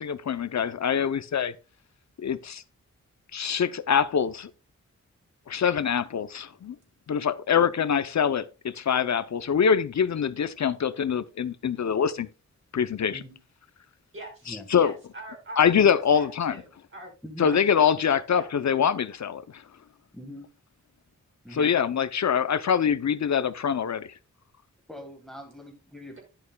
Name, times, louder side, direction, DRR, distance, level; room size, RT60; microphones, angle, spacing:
voice 1, 0.0-1.5 2.2-2.6 3.3-4.5 5.5-6.8 7.1-12.3 12.7-13.2 14.5-14.9 15.6-16.6 17.4-19.6 21.5-24.1, left 7 dB, 65° left, 0.6 m, -24 dB
voice 2, 13.1-13.4 14.5-14.7 17.2-17.6 20.1-20.5 21.4-21.7 24.9-26.2, equal, ahead, 1.7 m, -43 dB
voice 3, 14.1-17.1 17.4-17.9 18.3-18.5 21.6-21.7, right 1 dB, 40° right, 5.5 m, -44 dB
11.0 x 11.0 x 2.3 m
wide cardioid pair, 105°, 30 cm